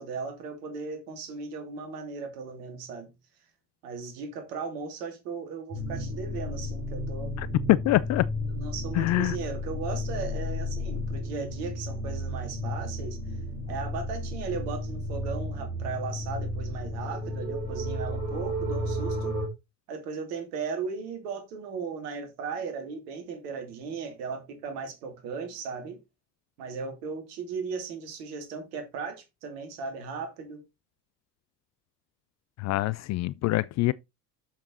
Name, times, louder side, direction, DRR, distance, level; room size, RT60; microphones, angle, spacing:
voice 1, 0.0-3.1 3.8-7.4 8.5-13.2 13.7-19.4 19.9-26.0 26.6-30.6, right 5 dB, 70° right, 2.9 m, -37 dB
sound 1, 5.7-19.5, left 1 dB, 90° right, 4.5 m, -33 dB
voice 2, 7.4-8.3 8.9-9.4 32.6-33.9, left 17 dB, 35° left, 0.4 m, -25 dB
7.7 x 7.2 x 4.0 m
figure-of-eight pair, 60°, 50 cm